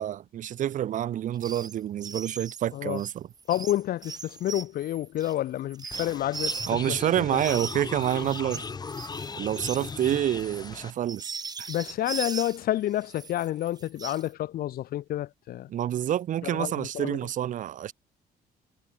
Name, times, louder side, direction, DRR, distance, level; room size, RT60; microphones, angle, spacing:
voice 1, 0.0-3.3 6.7-8.6 9.3-11.3 11.6-11.7 15.7-17.9, right 11 dB, 50° right, 1.5 m, -28 dB
sound 1, 1.4-1.7 2.0-7.0 7.4-12.6 13.0-14.3, right 5 dB, 25° right, 3.7 m, -39 dB
voice 2, 3.5-6.6 6.9-7.0 7.3-7.4 11.7-15.7 16.4-17.2, left 13 dB, 60° left, 3.1 m, -29 dB
sound 2, 5.9-10.9, left 5 dB, 25° left, 4.9 m, -38 dB
cardioid pair, 155°, 17 cm